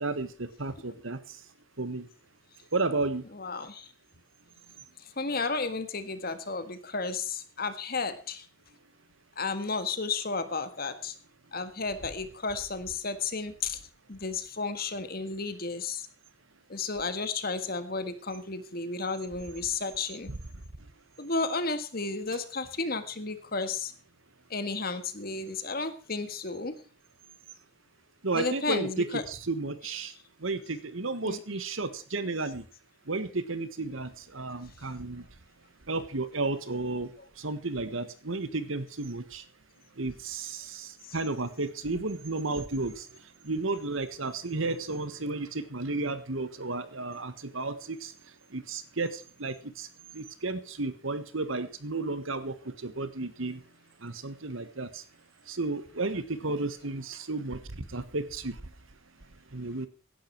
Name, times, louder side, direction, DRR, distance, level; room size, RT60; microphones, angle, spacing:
voice 1, 0.0-1.2 1.8-2.1 2.7-3.2 20.3-20.4 28.2-30.1 30.4-32.6 33.1-35.2 35.9-37.1 37.4-39.4 40.0-43.0 43.4-48.1 48.5-49.9 50.1-53.6 54.0-55.0 55.5-57.6 57.9-58.6 59.5-59.9, right 3 dB, 75° right, 13 dB, 1.5 m, -33 dB
voice 2, 3.3-3.9 5.2-8.4 9.4-11.1 11.5-13.8 14.1-16.1 16.7-20.3 21.2-23.9 24.5-26.7 28.3-29.2 31.2-31.4 56.5-56.6, left 4 dB, 45° left, 10 dB, 1.7 m, -33 dB
16.5 x 11.0 x 4.6 m, 0.37 s
head